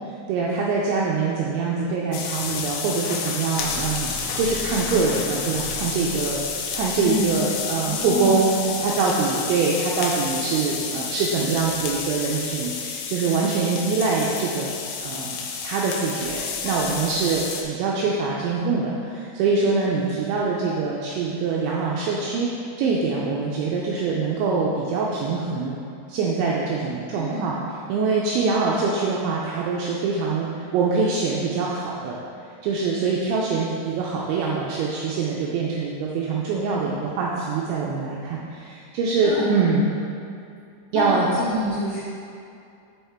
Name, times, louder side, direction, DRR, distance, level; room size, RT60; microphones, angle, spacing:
voice 1, 0.3-6.4 6.7-8.5 8.8-14.7 15.0-15.4 15.6-22.5 22.8-25.7 26.1-27.6 27.9-32.2 32.6-39.9 40.9-41.3, right 4 dB, 85° right, -3 dB, 2.6 m, -24 dB
sound 1, 2.1-17.6, left 6 dB, 85° left, 2.6 m, -30 dB
sound 2, 3.5-8.8, equal, 65° right, 2.6 m, -40 dB
voice 2, 7.0-7.5 7.8-8.3 8.6-8.8 27.1-27.5 39.2-39.5 40.9-42.0, equal, 70° left, -13 dB, 1.4 m, -28 dB
7.1 x 5.7 x 4.3 m, 2.5 s
omnidirectional pair, 5.9 m